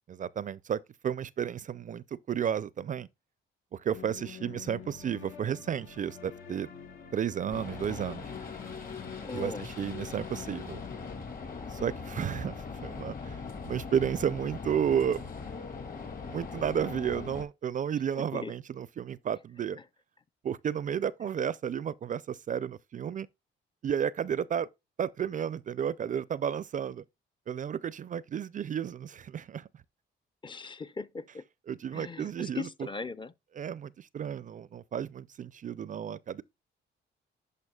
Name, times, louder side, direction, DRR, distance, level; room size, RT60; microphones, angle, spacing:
voice 1, 0.1-3.1 3.7-6.7 7.1-8.3 9.3-10.8 11.7-15.4 16.3-19.8 20.4-23.3 23.8-24.7 25.0-27.0 27.5-29.7 31.7-32.7 33.6-36.4, right 8 dB, 40° right, 0.4 m, -32 dB
sound 1, 3.9-11.1, left 7 dB, 75° left, 1.5 m, -46 dB
sound 2, 7.5-17.4, left 4 dB, 45° left, 2.3 m, -41 dB
voice 2, 9.2-9.7 18.1-18.5 30.4-31.4 31.9-33.3, left 4 dB, 25° left, 0.5 m, -39 dB
11.0 x 5.3 x 2.3 m
cardioid pair, 90°, 20 cm